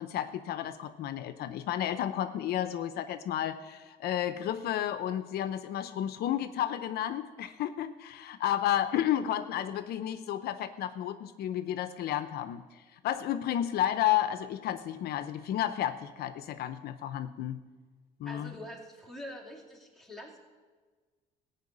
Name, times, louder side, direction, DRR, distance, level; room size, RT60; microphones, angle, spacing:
voice 1, 0.0-17.6 18.2-18.5, left 11 dB, 70° left, 11 dB, 0.6 m, -32 dB
voice 2, 18.3-20.4, left 1 dB, ahead, -2 dB, 2.6 m, -45 dB
15.0 x 5.7 x 8.5 m, 1.4 s
cardioid pair, 110°, 17 cm